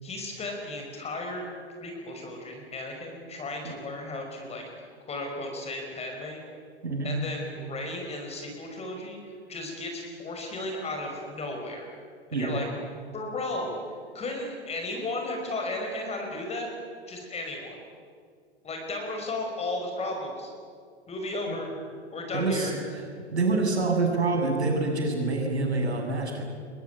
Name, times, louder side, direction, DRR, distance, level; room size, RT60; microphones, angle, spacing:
voice 1, 0.0-1.5 1.8-4.6 5.1-6.4 7.0-9.2 9.5-11.9 12.3-12.7 12.9-13.8 14.1-16.7 17.1-17.8 18.6-20.5 21.1-21.7 22.1-22.7, left 2 dB, 20° left, 2 dB, 5.4 m, -34 dB
voice 2, 22.3-23.0 23.3-26.4, right 3 dB, 75° right, 2 dB, 7.1 m, -26 dB
27.0 x 22.5 x 9.3 m, 2.1 s
figure-of-eight pair, 100°, 33 cm